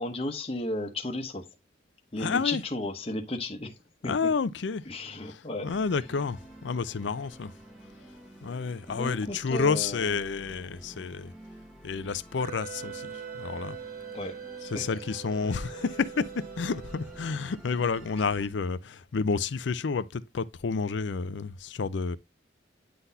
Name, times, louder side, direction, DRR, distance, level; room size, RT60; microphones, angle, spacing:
voice 1, 0.0-1.5 2.1-3.8 4.0-4.3 4.9-5.7 8.9-10.3 14.1-14.4 14.7-14.9, left 2 dB, 30° left, 1.0 m, -34 dB
voice 2, 2.2-2.6 4.0-4.8 5.2-7.5 8.4-11.3 11.8-13.8 14.6-22.2, left 5 dB, 80° left, 0.5 m, -30 dB
Musical instrument, 5.7-18.5, right 1 dB, 5° right, 1.1 m, -50 dB
Wind instrument woodwind instrument, 12.4-17.6, right 7 dB, 50° right, 0.6 m, -42 dB
9.5 x 3.9 x 2.7 m
head